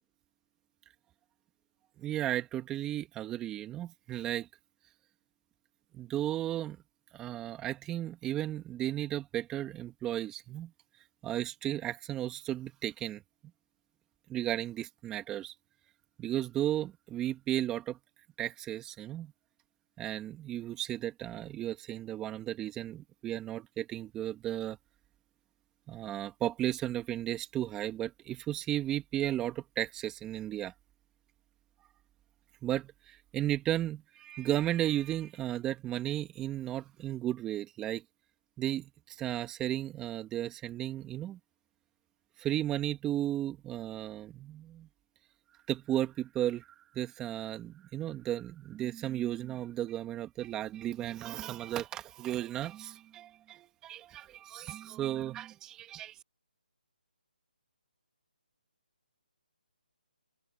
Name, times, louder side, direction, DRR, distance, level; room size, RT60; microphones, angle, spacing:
voice 1, 2.0-4.5 5.9-6.8 7.1-10.7 11.2-13.2 14.3-15.5 16.2-18.0 18.4-19.3 20.0-24.8 25.9-30.7 32.6-38.0 38.6-41.4 42.4-44.9 45.7-46.7 46.9-56.2, right 12 dB, 10° right, 2.4 m, -34 dB
hypercardioid pair, 160°, 5 cm